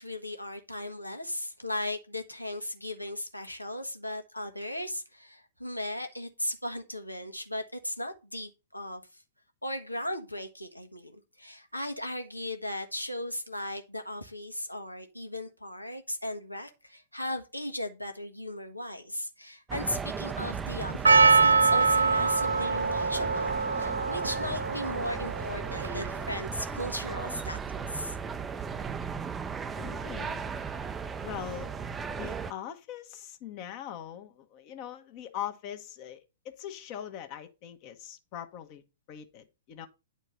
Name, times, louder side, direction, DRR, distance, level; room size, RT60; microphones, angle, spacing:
voice 1, 0.0-9.0 9.6-28.2, left 1 dB, 90° left, 1.5 m, -37 dB
sound 1, 19.7-32.5, right 6 dB, 15° right, 0.5 m, -36 dB
Percussion, 21.0-26.3, right 4 dB, 75° right, 0.4 m, -24 dB
voice 2, 29.7-30.6 31.2-31.7 32.1-38.8 39.1-39.9, left 10 dB, 35° left, 1.2 m, -41 dB
10.0 x 4.5 x 5.5 m
figure-of-eight pair, 110°, 0 cm